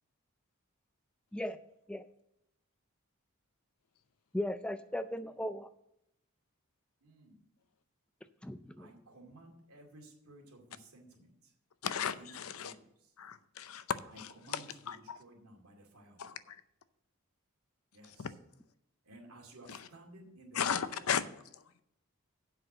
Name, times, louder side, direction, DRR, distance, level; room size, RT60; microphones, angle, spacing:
voice 1, 4.3-5.7 8.4-8.9, left 1 dB, 5° left, 11 dB, 0.3 m, -37 dB
voice 2, 7.0-7.5 8.8-11.5 11.9-13.1 14.1-16.4 17.9-18.3 19.0-21.2, right 1 dB, 90° right, 1 dB, 2.3 m, -56 dB
voice 3, 11.8-12.7 13.2-14.6 14.9-15.2 16.2-16.6 18.2-18.3 19.7-19.8 20.5-21.2, left 7 dB, 80° left, 13 dB, 0.6 m, -35 dB
7.8 x 5.8 x 7.6 m, 0.79 s
head